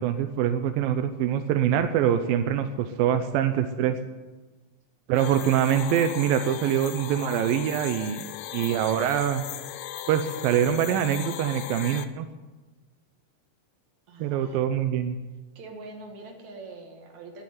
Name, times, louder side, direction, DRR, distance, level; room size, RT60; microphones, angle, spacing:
voice 1, 0.0-4.0 5.1-9.4 10.1-12.3 14.2-15.2, right 9 dB, 85° right, 8 dB, 2.5 m, -24 dB
sound 1, 5.1-12.0, left 12 dB, 75° left, 2.3 m, -37 dB
voice 2, 14.1-14.6 15.6-17.4, right 2 dB, 55° right, 1 dB, 3.4 m, -43 dB
13.0 x 10.5 x 9.6 m, 1.2 s
omnidirectional pair, 4.0 m